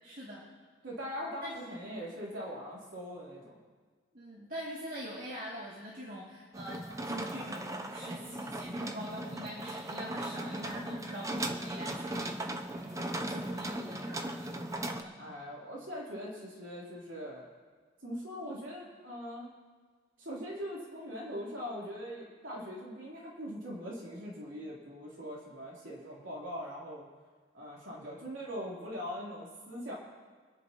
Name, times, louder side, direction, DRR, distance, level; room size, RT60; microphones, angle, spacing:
voice 1, 0.0-0.5 1.4-1.6 4.1-14.6 14.9-15.3, equal, 45° right, -7 dB, 2.6 m, -44 dB
voice 2, 0.8-3.5 15.2-17.5 18.0-19.5 20.2-27.1 27.5-29.9, equal, 75° right, -5 dB, 3.6 m, -41 dB
sound 1, 6.5-15.0, right 1 dB, 15° right, 0.7 m, -38 dB
27.5 x 10.5 x 3.1 m, 1.5 s
head